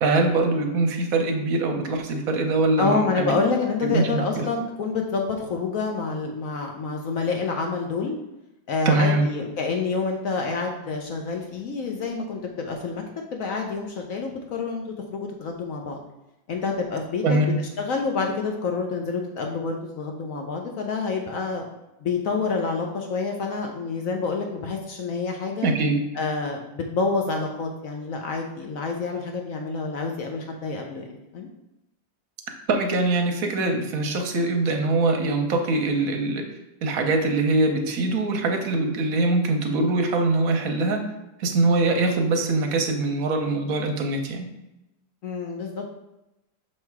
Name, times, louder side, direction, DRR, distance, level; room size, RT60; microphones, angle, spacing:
voice 1, 0.0-3.4 3.9-4.5 8.8-9.3 17.2-17.6 25.6-26.0 32.7-36.5 36.8-41.0 41.4-44.5, right 2 dB, 60° right, 4 dB, 1.0 m, -23 dB
voice 2, 2.8-8.2 8.7-13.0 13.3-16.0 16.5-21.7 22.0-25.7 26.1-31.1 31.3-31.5 45.2-45.9, left 4 dB, 70° left, 2 dB, 0.8 m, -28 dB
6.4 x 3.2 x 4.6 m, 0.94 s
omnidirectional pair, 2.1 m